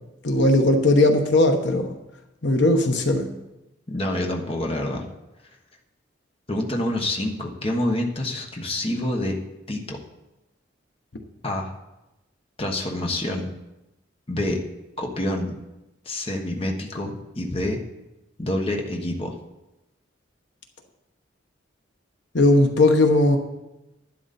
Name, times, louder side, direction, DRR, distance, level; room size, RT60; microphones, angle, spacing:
voice 1, 0.2-1.9 2.4-3.3 22.3-23.4, left 2 dB, 65° left, 4 dB, 1.2 m, -18 dB
voice 2, 3.9-5.1 6.5-9.4 9.7-10.0 11.4-11.7 12.6-13.5 14.3-14.6 15.0-15.5 16.0-17.8 18.4-19.4, left 1 dB, 30° left, 1 dB, 1.2 m, -27 dB
11.5 x 11.0 x 4.2 m, 0.97 s
head